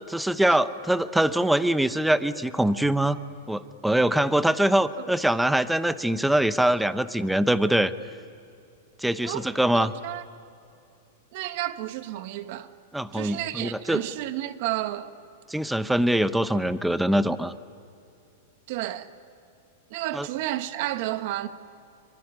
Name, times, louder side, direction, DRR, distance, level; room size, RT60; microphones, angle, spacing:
voice 1, 0.1-3.2 3.5-7.9 9.0-9.9 12.9-14.0 15.5-17.5 20.1-20.3, right 1 dB, 5° right, 0.8 m, -23 dB
voice 2, 9.7-10.2 11.3-12.7 13.1-15.1 18.7-19.1 19.9-21.5, right 15 dB, 55° right, 1.4 m, -31 dB
25.0 x 24.0 x 9.9 m
supercardioid pair, 140°, 0 cm